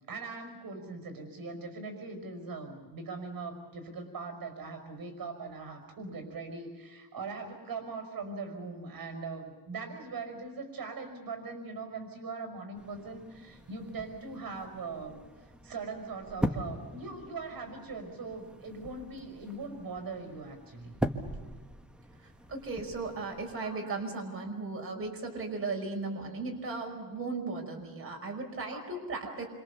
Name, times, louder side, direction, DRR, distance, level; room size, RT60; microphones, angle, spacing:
voice 1, 0.1-15.2 15.6-21.0 23.6-23.9 28.7-29.0 29.3-29.4, right 4 dB, 70° right, 6 dB, 5.3 m, -41 dB
sound 1, 12.7-23.6, equal, 5° right, 1.4 m, -40 dB
voice 2, 22.2-29.4, right 3 dB, 35° right, 1 dB, 5.4 m, -36 dB
28.5 x 26.5 x 7.0 m, 1.4 s
wide cardioid pair, 155°, 37 cm